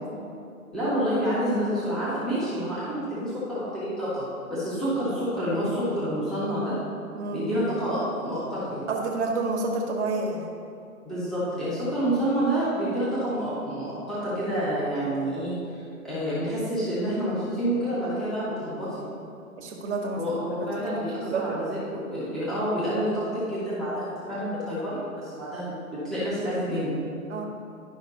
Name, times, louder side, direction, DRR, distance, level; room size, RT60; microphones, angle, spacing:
voice 1, 0.7-6.8 7.3-8.8 11.0-19.0 20.2-26.9, equal, ahead, -12 dB, 1.8 m, -28 dB
voice 2, 7.1-7.5 8.9-10.4 19.6-20.3 21.0-21.7 27.3-27.5, right 3 dB, 50° right, -1 dB, 1.6 m, -29 dB
12.0 x 5.8 x 2.9 m, 2.6 s
hypercardioid pair, 135°, 44 cm